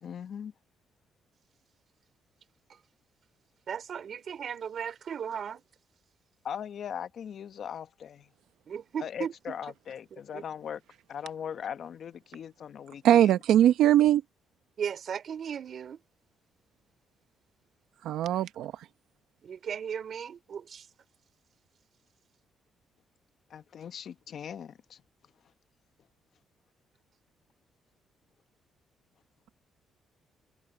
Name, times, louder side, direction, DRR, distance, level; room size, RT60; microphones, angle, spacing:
voice 1, 0.0-0.5 6.4-8.3 9.0-10.8 11.1-13.3 23.5-25.0, left 8 dB, 60° left, 1.0 m, -39 dB
voice 2, 3.7-5.6 8.7-9.6 10.3-10.4 14.8-16.0 19.4-20.9, right 7 dB, 55° right, 3.1 m, -36 dB
voice 3, 13.0-14.2 18.0-18.9, right 11 dB, 80° right, 0.7 m, -21 dB
cardioid pair, 90°, 0 cm